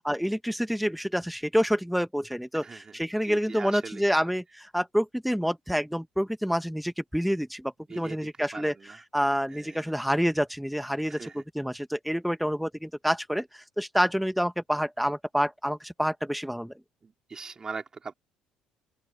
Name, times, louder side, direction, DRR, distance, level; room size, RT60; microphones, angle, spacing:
voice 1, 0.0-8.7 9.1-16.7, equal, ahead, 1.2 m, -28 dB
voice 2, 2.6-3.0 3.2-4.1 7.9-9.0 9.5-9.9 11.1-11.4 17.0-18.1, right 4 dB, 25° right, 3.7 m, -41 dB
open air
cardioid pair, 105°, 2 cm